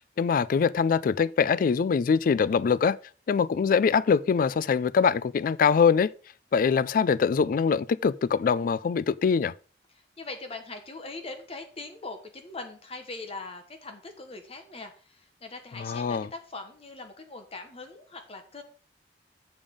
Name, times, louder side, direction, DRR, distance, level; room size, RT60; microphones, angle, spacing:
voice 1, 0.0-3.0 3.3-6.1 6.5-9.5 15.8-16.3, left 6 dB, 50° left, 0.3 m, -23 dB
voice 2, 10.2-18.6, left 3 dB, 35° left, 1.0 m, -41 dB
7.1 x 5.3 x 5.0 m
head